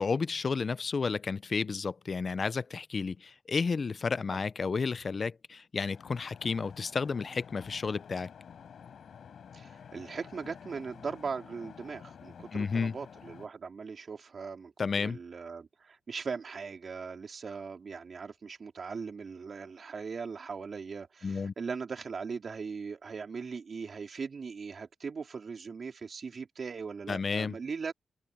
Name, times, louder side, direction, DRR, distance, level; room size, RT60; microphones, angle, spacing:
voice 1, 0.0-8.3 12.5-13.0 14.8-15.2 21.2-21.5 27.1-27.5, left 5 dB, 50° left, 0.6 m, -32 dB
sound 1, 5.9-13.5, left 7 dB, 75° left, 4.9 m, -50 dB
voice 2, 9.5-14.7 15.0-27.9, right 5 dB, 55° right, 4.4 m, -39 dB
open air
cardioid pair, 70°, 0 cm